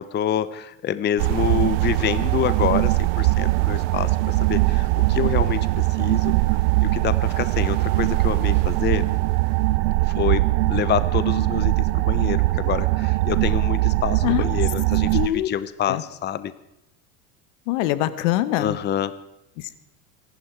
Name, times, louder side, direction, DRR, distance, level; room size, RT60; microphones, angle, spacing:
voice 1, 0.0-6.3 6.8-9.1 10.0-16.5 18.6-19.2, left 10 dB, 25° left, 15 dB, 0.7 m, -27 dB
sound 1, 1.2-15.3, right 20 dB, 65° right, 0.7 m, -21 dB
voice 2, 15.1-15.5 15.9-16.0 17.7-18.8 19.6-19.8, left 15 dB, 70° left, 15 dB, 1.3 m, -23 dB
25.5 x 11.5 x 4.6 m, 0.85 s
supercardioid pair, 100°, 39 cm